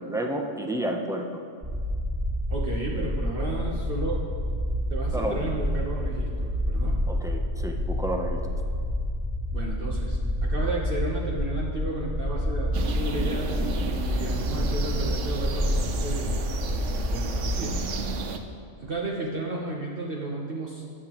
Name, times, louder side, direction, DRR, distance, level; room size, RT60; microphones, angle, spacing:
voice 1, 0.1-1.4 5.1-5.5 7.1-8.4, right 1 dB, 5° right, 2 dB, 0.6 m, -30 dB
sound 1, 1.6-18.1, equal, 20° right, 1.5 m, -28 dB
voice 2, 2.5-4.2 4.9-7.0 9.5-16.4 17.0-17.8 18.8-20.8, right 2 dB, 50° right, -3 dB, 1.2 m, -33 dB
sound 2, 12.7-18.4, right 5 dB, 80° right, 1.1 m, -34 dB
18.5 x 8.0 x 3.0 m, 2.2 s
omnidirectional pair, 1.2 m